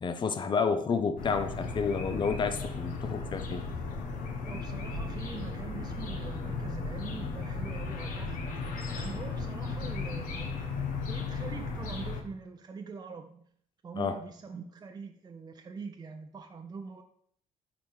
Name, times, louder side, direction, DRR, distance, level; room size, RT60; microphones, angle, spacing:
voice 1, 0.0-3.6 14.0-14.2, left 5 dB, 35° left, 9 dB, 0.6 m, -30 dB
sound 1, 1.2-12.2, left 4 dB, 75° left, 1.1 m, -35 dB
voice 2, 4.4-8.4 8.9-10.6 11.1-13.4 13.8-17.0, right 5 dB, 30° right, 4 dB, 0.6 m, -43 dB
4.9 x 4.5 x 5.5 m, 0.63 s
cardioid pair, 105°, 14 cm